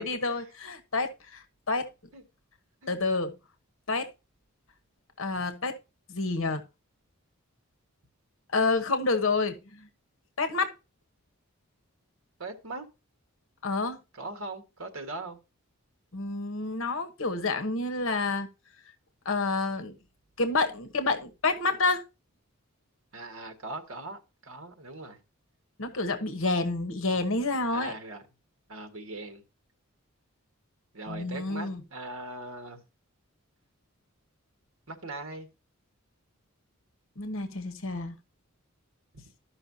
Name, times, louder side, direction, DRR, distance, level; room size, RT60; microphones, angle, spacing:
voice 1, 0.0-1.9 2.9-3.3 3.9-4.1 5.2-5.7 6.1-6.6 8.5-9.8 10.4-10.7 13.6-14.0 16.1-18.5 19.2-20.0 20.4-22.0 25.8-27.9 31.1-31.8 37.2-38.1, left 3 dB, 65° left, 1.1 m, -29 dB
voice 2, 12.4-12.9 14.1-15.4 23.1-25.2 27.6-28.2 28.7-29.4 30.9-32.8 34.9-35.5 39.1-39.2, right 2 dB, 70° right, 1.6 m, -40 dB
13.5 x 5.6 x 2.7 m
head